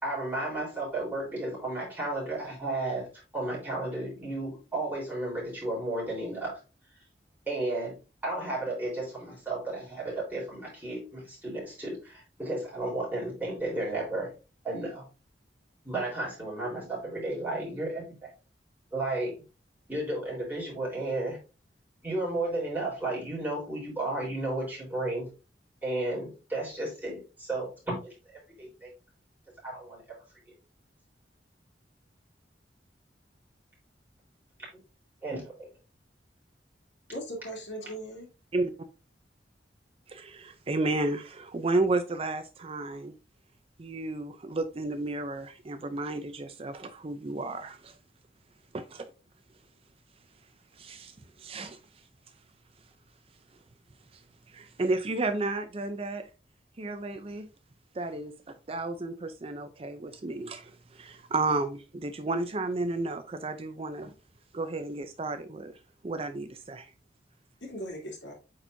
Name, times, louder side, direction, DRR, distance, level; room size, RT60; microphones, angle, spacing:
voice 1, 0.0-3.1 3.3-6.6 7.5-7.9 8.2-14.3 14.6-15.0 15.8-18.3 18.9-19.3 19.9-21.4 22.0-25.3 25.8-28.9 29.6-30.0 35.2-35.7, right 2 dB, 10° right, 3.9 m, -33 dB
voice 2, 37.1-38.3 67.6-68.3, equal, 90° left, 2.7 m, -38 dB
voice 3, 40.1-43.1 43.8-48.0 48.7-49.1 50.8-51.8 54.1-54.2 54.5-56.3 56.8-57.5 57.9-64.1 64.5-65.8 66.0-66.9, right 2 dB, 35° right, 0.5 m, -32 dB
8.6 x 4.4 x 2.6 m
head